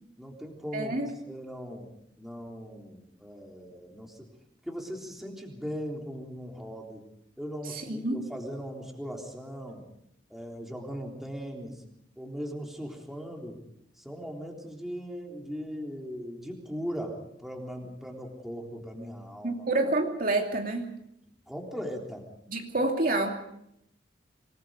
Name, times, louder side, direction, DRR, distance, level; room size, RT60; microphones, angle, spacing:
voice 1, 0.2-1.0 1.3-1.9 2.2-4.3 4.6-7.0 7.4-9.8 10.3-11.8 12.2-13.6 14.0-19.7 21.5-22.3 22.8-22.9, equal, ahead, 0 dB, 3.6 m, -39 dB
voice 2, 0.7-1.1 7.7-8.2 19.4-20.9 22.5-23.3, right 2 dB, 50° right, 2 dB, 2.7 m, -28 dB
26.5 x 20.5 x 5.1 m, 0.76 s
head